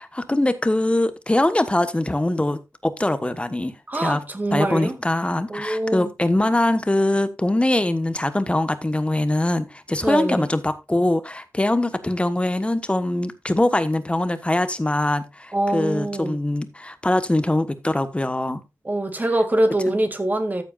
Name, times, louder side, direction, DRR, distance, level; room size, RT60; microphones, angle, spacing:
voice 1, 0.0-4.2 4.5-18.6 19.9-20.0, left 1 dB, 20° left, 1.3 m, -22 dB
voice 2, 3.9-4.9 5.5-6.1 10.0-10.5 15.5-16.4 18.8-20.6, right 1 dB, 30° right, 2.4 m, -23 dB
14.0 x 8.1 x 2.5 m
wide cardioid pair, 85°, 6 cm